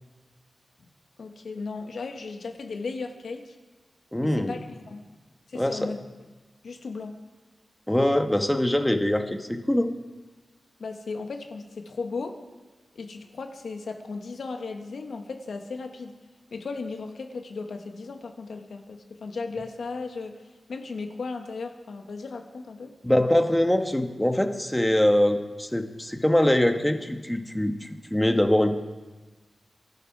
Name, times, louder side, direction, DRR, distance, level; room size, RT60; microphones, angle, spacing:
voice 1, 1.2-3.5 4.2-5.0 5.5-6.3 6.6-7.1 10.8-12.4 12.9-16.1 16.5-20.4 20.7-22.9, left 4 dB, 80° left, 5 dB, 1.5 m, -36 dB
voice 2, 4.1-4.6 5.5-5.9 7.9-9.9 23.0-28.8, left 1 dB, 10° left, 6 dB, 1.2 m, -23 dB
23.0 x 12.5 x 4.9 m, 1.3 s
wide cardioid pair, 95°, 0 cm